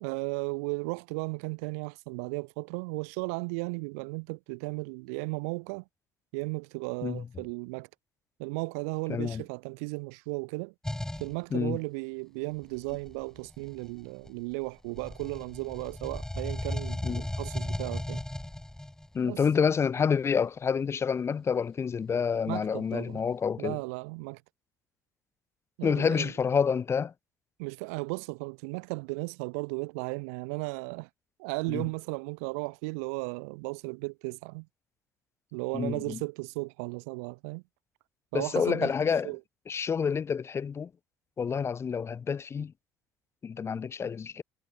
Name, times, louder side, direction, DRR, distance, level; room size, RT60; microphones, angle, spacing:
voice 1, 0.0-5.8 6.3-7.9 8.4-10.7 11.2-18.2 19.2-19.4 22.5-23.2 23.6-24.4 25.8-26.3 27.6-31.1 31.4-34.7 35.5-37.6 38.3-38.9 39.2-39.4, right 31 dB, 70° right, 0.4 m, -35 dB
voice 2, 9.1-9.4 11.5-11.8 17.0-17.3 19.1-23.8 25.8-27.1 31.7-31.8 35.7-36.2 38.3-39.3 39.7-40.9 41.4-42.7 43.4-44.4, left 6 dB, 30° left, 0.6 m, -28 dB
sound 1, 10.8-11.3 12.6-14.5 14.9-19.1, left 1 dB, 5° left, 0.9 m, -36 dB
hypercardioid pair, 55°, 8 cm